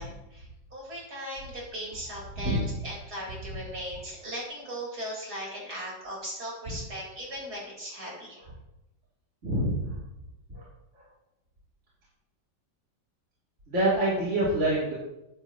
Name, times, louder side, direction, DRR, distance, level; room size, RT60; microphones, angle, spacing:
voice 1, 0.0-8.4, equal, 55° right, -4 dB, 5.1 m, -38 dB
voice 2, 9.4-10.0 10.5-10.6 10.9-11.0 13.7-14.9, right 1 dB, 35° right, -8 dB, 3.2 m, -26 dB
15.0 x 9.6 x 3.0 m, 0.91 s
omnidirectional pair, 2.1 m